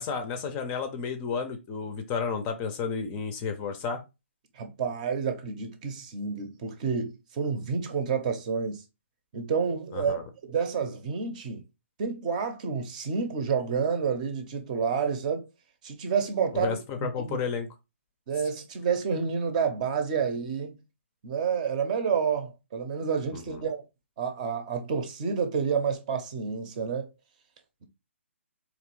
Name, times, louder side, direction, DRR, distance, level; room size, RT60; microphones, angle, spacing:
voice 1, 0.0-4.0 9.9-10.2 16.5-17.7 23.3-23.6, left 5 dB, 20° left, 0.6 m, -32 dB
voice 2, 4.6-8.8 9.3-10.2 10.5-11.6 12.0-15.5 15.8-17.4 18.3-20.8 21.2-23.8 24.2-27.1, right 6 dB, 35° right, 0.7 m, -29 dB
3.9 x 3.0 x 3.0 m
figure-of-eight pair, 135°, 7 cm